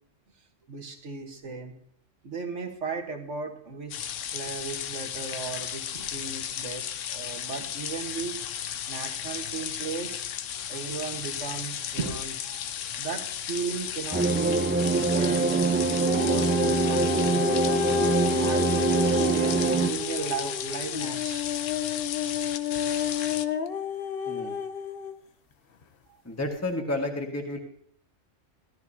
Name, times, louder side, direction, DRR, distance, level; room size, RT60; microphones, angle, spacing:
voice 1, 0.7-1.7 2.2-8.4 8.9-10.4 10.7-12.7 13.0-17.6 18.1-21.5 26.1-26.2, right 5 dB, 70° right, 3 dB, 1.8 m, -36 dB
sound 1, 3.9-23.4, left 9 dB, 85° left, 1.0 m, -34 dB
sound 2, 14.1-19.9, right 4 dB, 10° right, 0.6 m, -24 dB
sound 3, 16.0-25.1 25.8-25.9, left 7 dB, 55° left, 0.9 m, -30 dB
voice 2, 24.3-24.6 26.2-27.6, left 2 dB, 10° left, 2 dB, 1.6 m, -31 dB
17.5 x 13.0 x 2.8 m, 0.62 s
omnidirectional pair, 1.3 m